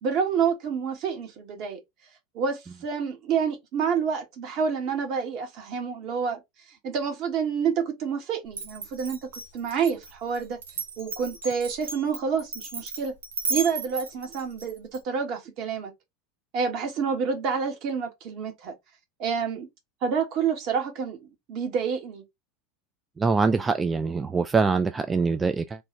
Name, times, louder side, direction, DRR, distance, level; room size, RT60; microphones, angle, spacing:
voice 1, 0.0-1.8 2.3-6.4 6.8-10.6 11.0-13.1 13.5-15.9 16.5-18.7 19.2-19.7 20.0-22.2, right 6 dB, 50° right, 1.4 m, -28 dB
Glass, 8.5-15.0, right 3 dB, 80° right, 1.0 m, -35 dB
voice 2, 23.2-25.9, right 4 dB, 20° right, 0.3 m, -24 dB
3.2 x 2.4 x 3.1 m
hypercardioid pair, 85°, 0 cm